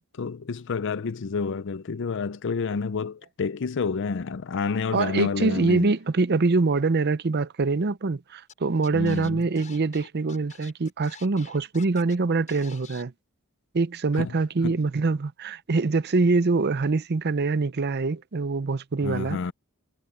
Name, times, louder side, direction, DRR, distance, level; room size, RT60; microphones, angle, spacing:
voice 1, 0.2-5.9 8.9-9.4 14.2-14.3 14.6-14.8 19.0-19.5, left 5 dB, 55° left, 0.5 m, -29 dB
voice 2, 4.9-13.1 13.7-19.4, right 3 dB, 50° right, 0.6 m, -24 dB
Scratching (performance technique), 8.5-8.6 8.8-12.2 12.5-13.0, left 6 dB, 35° left, 6.4 m, -48 dB
head